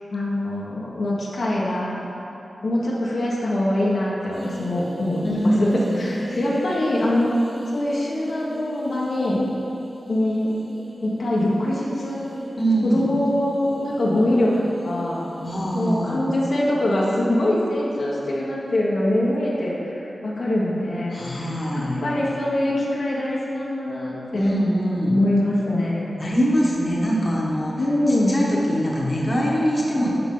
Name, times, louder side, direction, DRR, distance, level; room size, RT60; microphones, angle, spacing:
voice 1, 0.1-2.1 2.6-5.7 6.0-7.4 7.7-9.4 10.1-10.5 11.0-12.2 12.8-14.5 14.8-24.5 25.0-26.2 27.8-28.4, left 1 dB, 70° left, -6 dB, 1.3 m, -23 dB
sound 1, 4.3-15.9, equal, 65° right, 1.9 m, -39 dB
voice 2, 5.2-6.4 12.6-13.1 15.4-16.2 21.1-22.0 24.3-25.2 26.2-27.7 28.1-30.2, equal, 35° left, -4 dB, 1.3 m, -23 dB
11.0 x 4.9 x 3.8 m, 3.0 s
wide cardioid pair, 85°, 0 cm